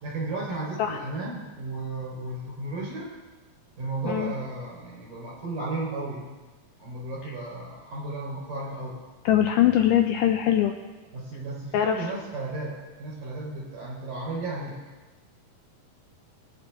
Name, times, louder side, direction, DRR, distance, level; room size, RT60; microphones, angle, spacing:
voice 1, 0.0-3.1 3.8-6.4 6.8-9.0 11.1-14.8, right 2 dB, 60° right, -3 dB, 5.2 m, -34 dB
voice 2, 9.3-10.7 11.7-12.0, left 11 dB, 85° left, 5 dB, 1.9 m, -22 dB
20.0 x 8.8 x 3.5 m, 1.3 s
omnidirectional pair, 4.2 m